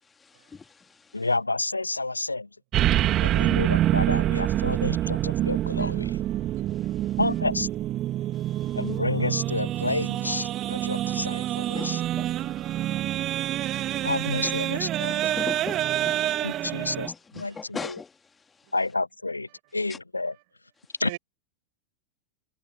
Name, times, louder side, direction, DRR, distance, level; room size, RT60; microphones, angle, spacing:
voice 1, 0.0-1.3 3.0-3.4 6.7-7.2 8.3-8.8 11.7-12.3 12.8-12.9 13.6-14.1 14.4-14.6 15.1-18.7 19.9-20.0 20.8-20.9, left 5 dB, 15° left, 2.6 m, -42 dB
voice 2, 1.1-2.5 3.2-6.2 7.2-7.7 8.7-11.4 11.8-12.0 14.0-15.2 16.4-17.9 18.7-20.3 21.0-21.1, left 2 dB, 80° left, 1.1 m, -29 dB
sound 1, 2.7-17.1, right 13 dB, 30° right, 2.3 m, -26 dB
voice 3, 6.4-7.2 8.6-8.8 11.2-11.3 21.0-21.2, right 24 dB, 50° right, 5.6 m, -45 dB
figure-of-eight pair, 90°, 0 cm